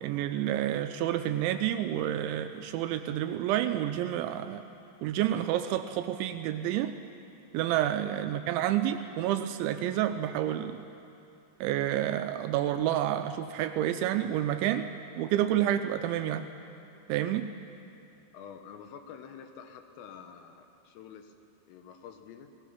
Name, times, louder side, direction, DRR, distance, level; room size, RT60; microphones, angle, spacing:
voice 1, 0.0-4.6 5.0-6.9 7.5-10.8 11.6-14.9 15.2-16.5 17.1-17.5, right 12 dB, 80° right, 8 dB, 2.8 m, -29 dB
voice 2, 18.3-21.3 21.7-22.5, left 7 dB, 85° left, 7 dB, 3.9 m, -48 dB
29.0 x 18.0 x 5.8 m, 2.7 s
omnidirectional pair, 5.7 m